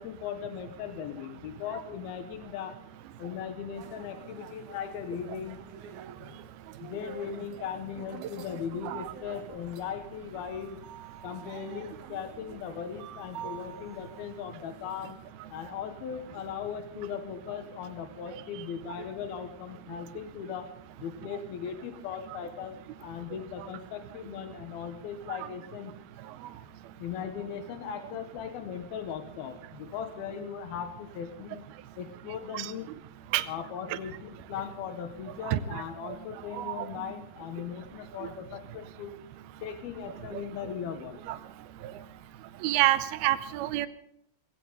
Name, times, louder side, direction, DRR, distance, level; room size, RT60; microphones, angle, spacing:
voice 1, 0.0-2.8 3.2-5.6 6.2-6.4 6.8-10.8 11.2-15.2 15.5-20.7 21.0-25.9 27.0-31.6 32.0-32.9 33.5-39.2 39.6-41.2, left 8 dB, 90° left, 7 dB, 3.1 m, -38 dB
sound 1, 3.7-15.3, right 8 dB, 65° right, 2.3 m, -48 dB
voice 2, 35.5-35.8 36.6-36.9 40.3-40.4 41.3-41.4 42.6-43.9, right 15 dB, 85° right, 13 dB, 2.7 m, -27 dB
19.5 x 17.0 x 4.0 m, 0.79 s
omnidirectional pair, 4.3 m